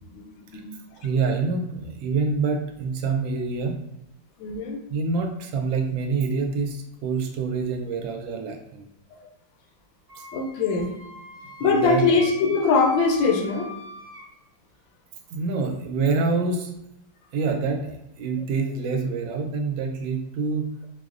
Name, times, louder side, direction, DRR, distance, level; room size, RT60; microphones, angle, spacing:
voice 1, 1.0-3.8 4.9-8.8 10.1-10.2 11.6-12.0 15.3-16.7 17.3-20.7, right 4 dB, 85° right, 3 dB, 1.3 m, -26 dB
voice 2, 4.4-4.8 10.3-10.9 11.6-13.7, left 4 dB, 85° left, 5 dB, 1.3 m, -22 dB
Wind instrument woodwind instrument, 10.1-14.2, equal, 50° right, 1.4 m, -41 dB
4.8 x 2.0 x 2.4 m, 0.84 s
omnidirectional pair, 2.0 m